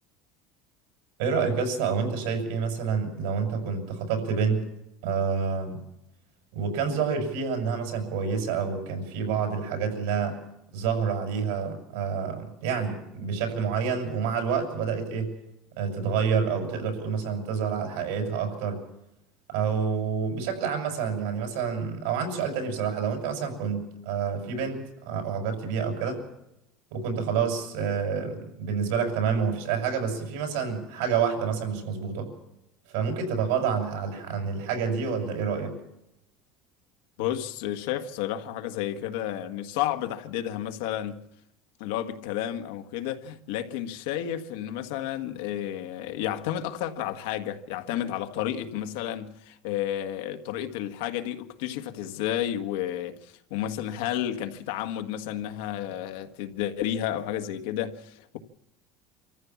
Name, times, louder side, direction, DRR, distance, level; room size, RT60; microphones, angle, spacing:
voice 1, 1.2-4.6 5.0-5.8 6.5-10.4 10.7-15.3 15.8-18.8 19.5-26.2 26.9-32.3 32.9-35.7, right 6 dB, 80° right, 6.4 m, -28 dB
voice 2, 37.2-41.2 41.8-58.4, left 11 dB, 85° left, 1.6 m, -31 dB
26.0 x 14.5 x 7.3 m
cardioid pair, 165°, 0 cm